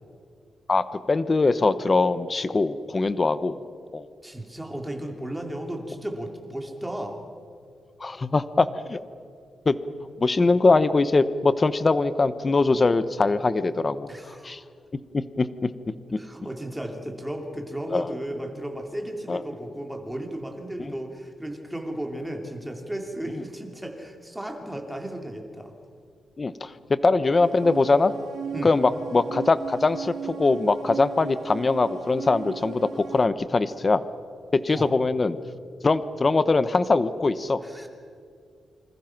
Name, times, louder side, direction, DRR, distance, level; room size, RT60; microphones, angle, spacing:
voice 1, 0.7-3.6 3.9-4.1 8.0-9.0 9.7-9.8 10.2-14.1 14.4-14.6 15.1-15.7 16.1-16.2 17.9-18.1 19.3-19.4 26.4-28.1 28.6-34.0 34.5-35.4 35.8-37.6, left 3 dB, 25° left, 13 dB, 0.9 m, -22 dB
voice 2, 4.2-7.2 14.1-14.5 16.2-25.7 28.5-28.7 34.7-34.9 37.6-37.9, right 1 dB, 5° right, 2 dB, 3.0 m, -34 dB
sound 1, 27.3-33.3, right 7 dB, 60° right, 2.5 m, -37 dB
28.0 x 26.0 x 6.0 m, 2.3 s
wide cardioid pair, 165°, 0 cm